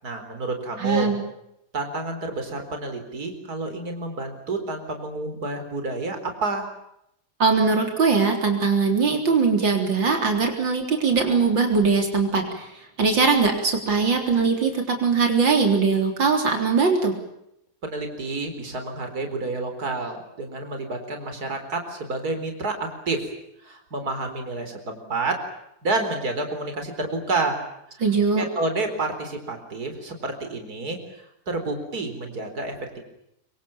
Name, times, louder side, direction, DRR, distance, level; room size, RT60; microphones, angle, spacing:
voice 1, 0.0-1.1 1.7-6.7 17.8-23.3 23.6-25.4 25.8-27.6 27.9-28.0 28.3-32.7, right 2 dB, 55° right, 6 dB, 4.6 m, -29 dB
voice 2, 0.8-1.2 7.4-17.1 28.0-28.4, right 4 dB, 85° right, 3 dB, 4.4 m, -21 dB
26.5 x 24.5 x 7.2 m, 0.80 s
omnidirectional pair, 2.0 m